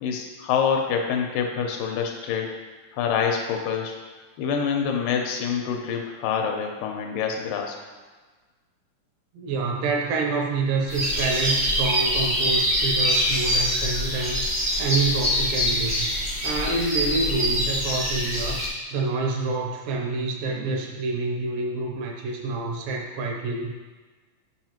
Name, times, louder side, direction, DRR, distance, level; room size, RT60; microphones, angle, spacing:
voice 1, 0.0-2.6 2.9-3.9 4.4-7.8, left 7 dB, 90° left, 2 dB, 2.3 m, -26 dB
voice 2, 9.3-16.1 16.4-18.6 18.9-23.7, right 3 dB, 85° right, 1 dB, 2.6 m, -27 dB
sound 1, 10.9-18.7, equal, 30° right, 0.5 m, -24 dB
8.0 x 5.7 x 3.0 m, 1.3 s
omnidirectional pair, 3.8 m